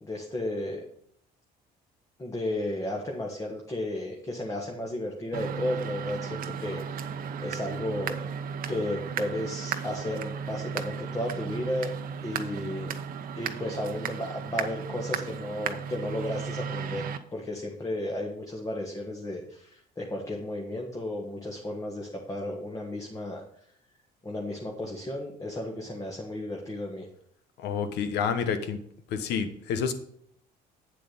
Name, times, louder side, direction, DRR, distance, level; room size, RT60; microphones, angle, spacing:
voice 1, 0.0-0.8 2.2-8.2 8.7-11.9 12.2-13.0 13.3-23.4 24.2-27.1, left 1 dB, 20° left, 0 dB, 1.5 m, -34 dB
sound 1, 5.3-17.2, right 7 dB, 55° right, 0.8 m, -35 dB
voice 2, 27.6-28.8 29.1-29.9, left 6 dB, 80° left, 10 dB, 1.1 m, -29 dB
8.4 x 7.6 x 4.0 m, 0.66 s
cardioid pair, 110°, 17 cm